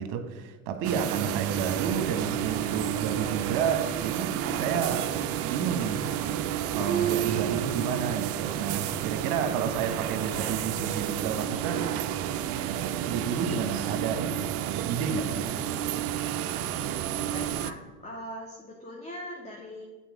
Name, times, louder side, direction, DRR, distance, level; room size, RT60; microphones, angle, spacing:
voice 1, 0.0-6.1 6.7-11.9 13.1-15.6, right 7 dB, 55° right, 1.0 m, -31 dB
sound 1, 0.8-17.7, right 11 dB, 35° right, 0.4 m, -31 dB
Harp, 6.8-8.6 8.9-9.3 9.9-10.0, right 9 dB, 55° left, 2.4 m, -32 dB
voice 2, 17.1-19.9, equal, 15° left, 1.1 m, -41 dB
7.9 x 4.1 x 4.7 m
hypercardioid pair, 95°, 43 cm